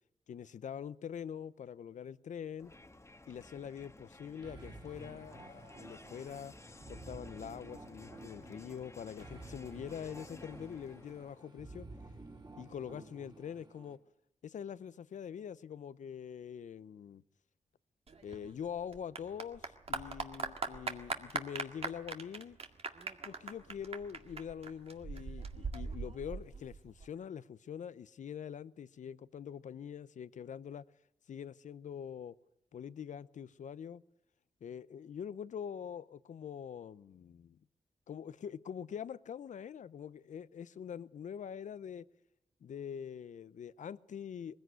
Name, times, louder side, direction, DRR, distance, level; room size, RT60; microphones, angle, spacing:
voice 1, 0.3-2.7 3.3-6.5 6.9-11.9 12.6-14.0 14.4-17.2 18.2-22.6 23.2-30.9 31.3-32.4 32.7-34.0 34.6-37.6 38.1-42.1 42.6-44.6, left 8 dB, 75° left, 0.7 m, -44 dB
Crowd, 2.6-11.4, left 2 dB, 20° left, 1.5 m, -55 dB
sound 1, 4.4-14.0, right 2 dB, 30° right, 3.5 m, -52 dB
Clapping / Applause, 18.1-27.1, right 4 dB, 50° right, 1.9 m, -41 dB
21.0 x 16.0 x 9.3 m
cardioid pair, 65°, 13 cm